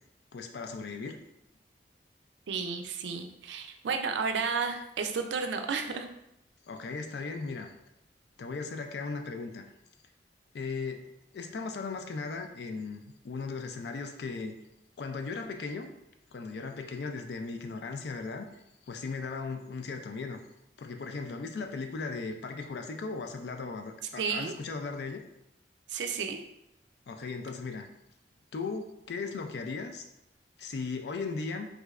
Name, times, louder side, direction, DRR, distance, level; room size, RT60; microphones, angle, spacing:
voice 1, 0.3-1.2 6.7-7.7 8.4-9.7 10.5-11.0 11.3-14.6 15.0-15.9 16.3-20.4 20.8-25.2 27.1-27.9 28.5-30.1 30.6-31.7, left 4 dB, 70° left, 6 dB, 0.4 m, -37 dB
voice 2, 2.5-6.1 24.2-24.5 25.9-26.4, right 5 dB, 85° right, 6 dB, 0.4 m, -32 dB
3.6 x 3.1 x 2.4 m, 0.82 s
head